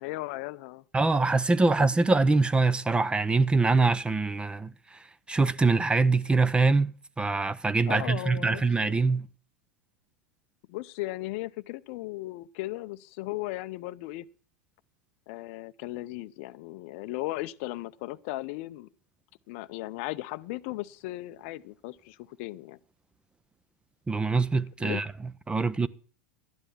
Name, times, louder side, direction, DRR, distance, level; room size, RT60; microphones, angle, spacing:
voice 1, 0.0-0.8 7.8-9.0 10.7-14.3 15.3-18.9 19.5-22.8 24.8-25.0 25.6-25.9, left 18 dB, 50° left, 0.5 m, -37 dB
voice 2, 0.9-4.7 5.3-6.9 7.2-9.3 24.1-25.1 25.5-25.9, right 3 dB, 10° right, 0.5 m, -24 dB
12.5 x 9.8 x 6.0 m
figure-of-eight pair, 90°, 9 cm